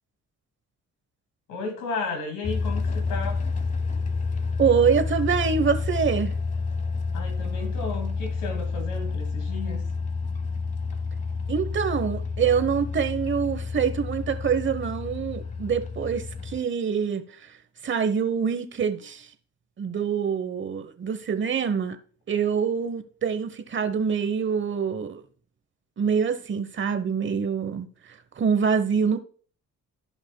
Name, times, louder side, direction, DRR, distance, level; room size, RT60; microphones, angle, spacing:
voice 1, 1.5-3.4 7.1-9.8, left 4 dB, 85° left, 2.3 m, -33 dB
sound 1, 2.4-16.6, left 4 dB, 25° left, 1.0 m, -29 dB
voice 2, 4.6-6.3 11.5-17.4 17.8-19.3 19.8-22.0 22.3-25.2 26.0-29.2, right 6 dB, 40° right, 1.0 m, -25 dB
14.5 x 5.3 x 2.2 m
cardioid pair, 90°, 30 cm